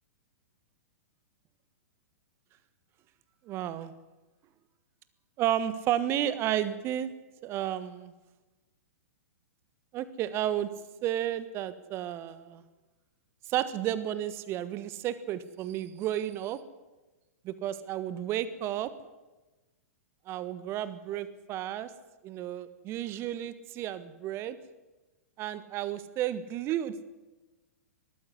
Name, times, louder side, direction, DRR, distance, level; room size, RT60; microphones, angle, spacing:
voice 1, 3.5-3.9 5.4-7.1 7.4-8.1 9.9-10.7 11.0-12.6 13.5-16.6 17.4-18.9 20.3-21.9 22.2-24.6 25.4-27.1, right 11 dB, 30° right, 15 dB, 1.4 m, -32 dB
20.5 x 14.5 x 9.7 m, 1.1 s
figure-of-eight pair, 110°, 8 cm